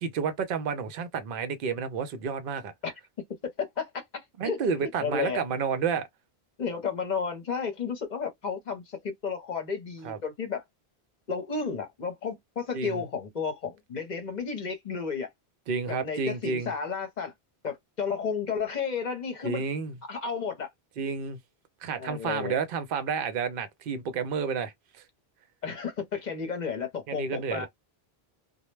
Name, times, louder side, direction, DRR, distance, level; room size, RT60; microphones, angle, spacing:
voice 1, 0.0-2.7 4.4-6.1 10.0-10.2 12.7-13.0 15.7-16.7 19.4-20.0 21.0-21.4 21.8-24.7 27.1-27.7, right 6 dB, 65° right, 0.7 m, -30 dB
voice 2, 3.6-5.4 6.6-10.6 11.3-15.3 15.9-17.3 17.6-19.6 20.1-20.7 22.0-22.6 25.6-27.7, left 5 dB, 50° left, 0.7 m, -32 dB
2.1 x 2.1 x 3.0 m
omnidirectional pair, 1.1 m